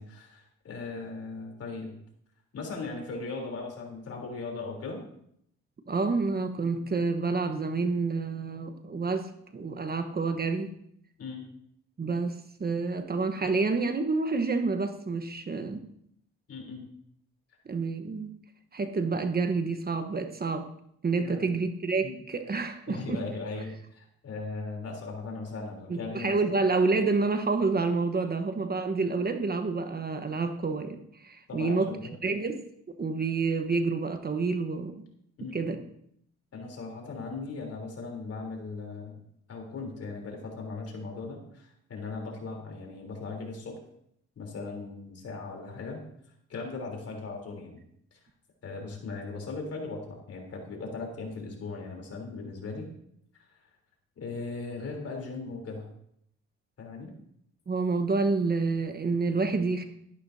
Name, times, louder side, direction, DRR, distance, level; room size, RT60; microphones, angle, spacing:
voice 1, 0.0-1.9 2.5-5.0 11.2-11.4 16.5-16.9 21.2-21.6 22.0-22.2 22.9-26.4 31.5-32.1 35.4-35.8 36.5-39.2 39.5-43.8 44.3-46.0 46.5-47.8 48.1-48.2 48.6-52.9 54.2-55.9 56.8-57.1, left 3 dB, 55° left, 1 dB, 3.5 m, -38 dB
voice 2, 5.9-10.7 12.0-12.3 12.6-15.8 17.7-18.3 18.7-20.7 21.0-23.2 25.9-31.9 32.2-32.6 32.9-34.9 35.5-35.8 57.7-59.8, right 4 dB, 35° right, 7 dB, 1.1 m, -28 dB
13.0 x 11.5 x 2.7 m, 0.70 s
cardioid pair, 85°, 29 cm